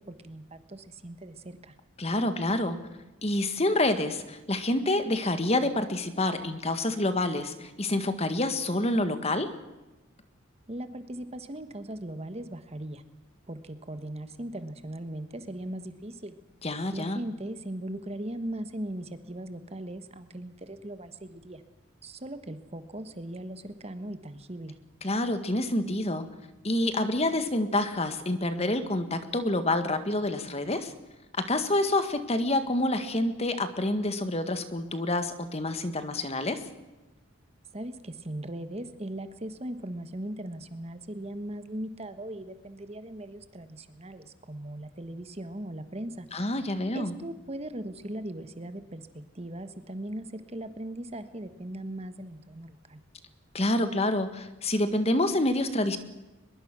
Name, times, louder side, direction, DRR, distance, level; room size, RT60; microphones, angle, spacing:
voice 1, 0.1-1.7 10.7-13.0 13.5-16.4 16.9-21.6 22.0-24.8 37.7-46.3 46.9-53.0, right 1 dB, 30° right, 10 dB, 1.3 m, -39 dB
voice 2, 2.0-2.8 3.2-9.5 16.6-17.2 25.0-26.3 26.6-30.9 31.4-36.7 46.3-47.1 53.5-56.0, left 1 dB, 30° left, 9 dB, 1.7 m, -27 dB
22.5 x 22.0 x 6.2 m, 1.1 s
head